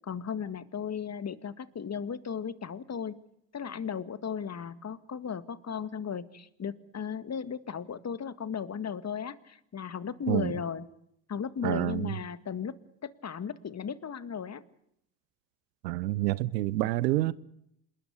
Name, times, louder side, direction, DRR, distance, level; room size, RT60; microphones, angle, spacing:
voice 1, 0.0-3.2 3.5-10.8 11.3-12.8 13.0-14.6, left 7 dB, 35° left, 1.9 m, -36 dB
voice 2, 11.6-12.2 15.8-17.3, right 17 dB, 80° right, 1.0 m, -28 dB
27.5 x 20.5 x 8.2 m
hypercardioid pair, 65°, 48 cm